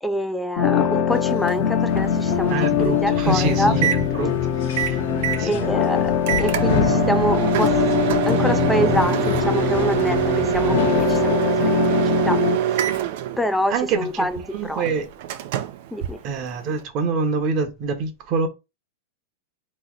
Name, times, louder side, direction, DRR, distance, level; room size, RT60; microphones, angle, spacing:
voice 1, 0.0-3.7 5.4-7.8 8.1-12.4 12.7-12.8 13.4-14.4 14.6-14.8 15.9-16.2, equal, ahead, 0.5 m, -26 dB
sound 1, 0.6-12.6, left 8 dB, 40° left, 1.0 m, -22 dB
Microwave oven, 1.1-16.8, right 10 dB, 55° right, 0.7 m, -26 dB
sound 2, 1.9-11.4, left 7 dB, 80° left, 1.2 m, -30 dB
voice 2, 2.5-4.3 4.6-5.0 5.3-5.7 13.7-15.1 16.2-18.5, right 4 dB, 35° right, 1.1 m, -26 dB
3.9 x 3.2 x 3.9 m
supercardioid pair, 155°, 0 cm